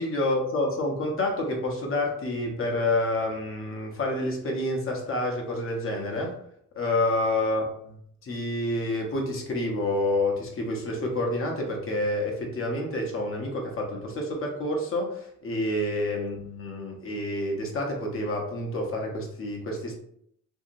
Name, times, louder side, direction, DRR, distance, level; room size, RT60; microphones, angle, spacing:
voice 1, 0.0-6.4 6.7-19.9, left 1 dB, 45° left, 0 dB, 0.8 m, -28 dB
2.8 x 2.7 x 2.6 m, 0.70 s
cardioid pair, 90°, 30 cm